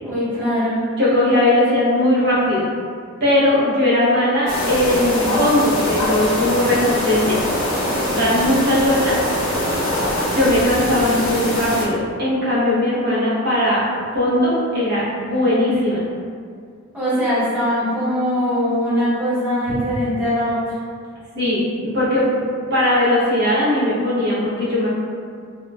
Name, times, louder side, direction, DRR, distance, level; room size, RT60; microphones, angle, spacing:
voice 1, 0.0-0.8 16.9-20.6, equal, 5° right, -12 dB, 0.7 m, -21 dB
voice 2, 1.0-2.7 3.2-7.4 8.0-9.2 9.6-9.7 10.3-13.8 14.1-16.0 21.4-24.9, left 1 dB, 55° right, -8 dB, 0.7 m, -19 dB
sound 1, 4.5-11.8, left 1 dB, 65° left, 0.8 m, -22 dB
2.9 x 2.0 x 2.3 m, 2.2 s
head